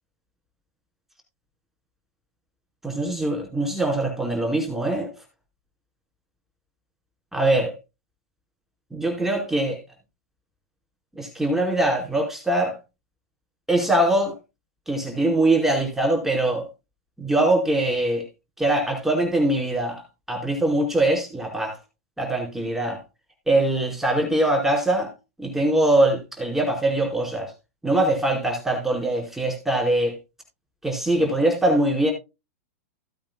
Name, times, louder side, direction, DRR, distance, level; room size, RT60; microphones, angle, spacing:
voice 1, 2.8-5.1 7.3-7.7 8.9-9.8 11.2-12.7 13.7-14.3 14.9-16.6 17.2-18.2 18.6-20.0 20.3-21.8 22.2-23.0 23.5-25.1 25.4-27.5 27.8-30.1 30.8-32.1, right 1 dB, 5° right, 4.5 m, -22 dB
16.5 x 8.6 x 2.2 m
hypercardioid pair, 115°, 8 cm